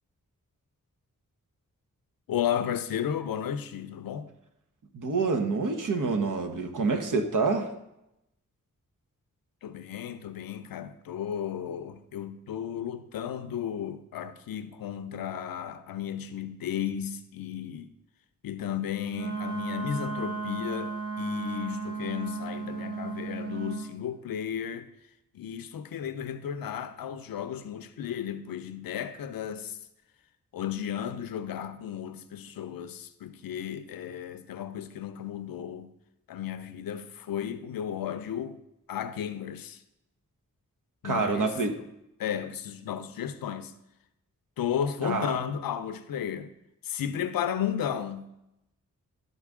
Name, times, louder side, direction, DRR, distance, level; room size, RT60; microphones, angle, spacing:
voice 1, 2.3-4.3 9.6-17.9 18.4-24.9 25.3-29.8 30.5-35.9 36.3-38.6 38.9-39.8 41.0-41.5 42.2-43.7 44.6-46.5 46.8-48.3, left 9 dB, 90° left, 0.5 m, -34 dB
voice 2, 4.9-7.7 41.0-41.8 45.0-45.4, right 4 dB, 65° right, 1.0 m, -27 dB
Wind instrument woodwind instrument, 19.1-23.9, right 4 dB, 50° right, 2.2 m, -34 dB
12.0 x 4.0 x 3.6 m
cardioid pair, 45°, 34 cm